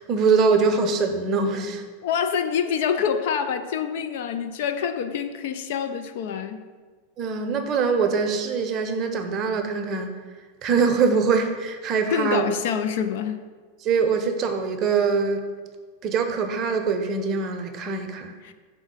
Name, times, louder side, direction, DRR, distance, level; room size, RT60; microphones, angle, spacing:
voice 1, 0.0-1.8 7.2-10.2 10.6-12.4 13.8-15.5 16.0-18.3, right 5 dB, 35° right, 6 dB, 0.7 m, -23 dB
voice 2, 2.0-6.6 12.1-13.4 18.4-18.5, left 7 dB, 50° left, 9 dB, 0.4 m, -26 dB
5.5 x 3.9 x 6.1 m, 1.5 s
figure-of-eight pair, 90°, 0 cm